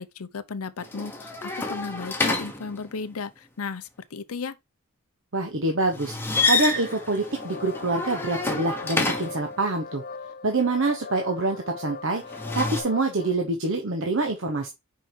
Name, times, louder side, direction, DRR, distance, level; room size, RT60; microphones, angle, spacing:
voice 1, 0.0-4.5, left 5 dB, 85° left, 0.6 m, -35 dB
sound 1, 0.8-3.1 5.9-9.5 12.2-12.8, left 3 dB, 10° left, 1.1 m, -28 dB
voice 2, 5.3-6.1 6.4-10.0 10.4-14.7, right 2 dB, 60° right, 1.0 m, -26 dB
sound 2, 6.7-13.3, left 4 dB, 45° left, 0.5 m, -40 dB
5.5 x 4.8 x 4.4 m
head